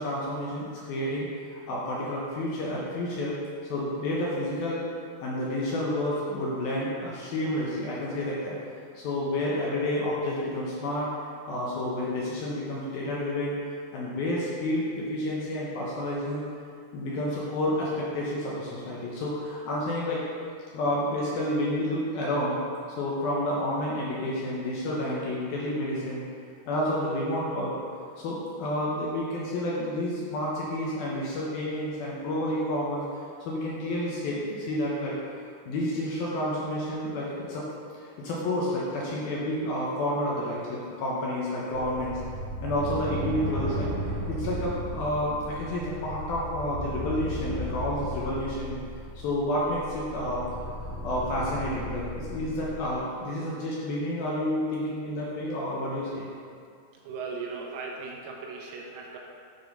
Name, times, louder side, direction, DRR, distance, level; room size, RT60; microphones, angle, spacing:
voice 1, 0.0-3.4 3.7-4.8 5.2-8.5 9.0-11.1 11.5-13.6 13.9-16.4 16.9-20.2 20.7-22.6 23.0-26.3 26.7-27.7 28.2-35.1 35.7-37.7 37.9-42.2 42.6-43.9 44.3-48.8 49.2-50.4 50.8-56.3, left 1 dB, 70° left, -5 dB, 2.5 m, -30 dB
sound 1, 41.7-53.0, equal, 55° right, 2.4 m, -35 dB
voice 2, 57.0-59.2, right 4 dB, 80° right, -1 dB, 3.2 m, -37 dB
10.5 x 4.5 x 5.4 m, 2.3 s
omnidirectional pair, 5.3 m